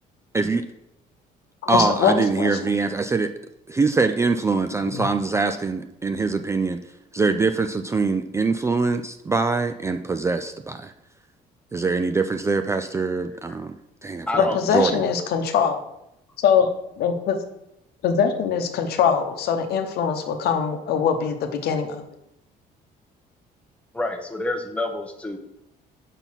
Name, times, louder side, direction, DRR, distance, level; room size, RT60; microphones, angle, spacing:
voice 1, 0.3-0.6 1.7-3.3 3.7-6.8 7.1-10.9 11.7-13.8 14.0-15.0, right 4 dB, 15° right, 8 dB, 0.3 m, -23 dB
voice 2, 1.6-2.7 4.9-5.1 14.4-15.8 16.4-16.7 17.0-17.4 18.0-22.0, left 7 dB, 70° left, 6 dB, 0.9 m, -22 dB
voice 3, 14.3-14.6 23.9-25.4, left 2 dB, 5° left, 4 dB, 0.9 m, -28 dB
5.3 x 4.5 x 5.7 m, 0.82 s
cardioid pair, 110°, 17 cm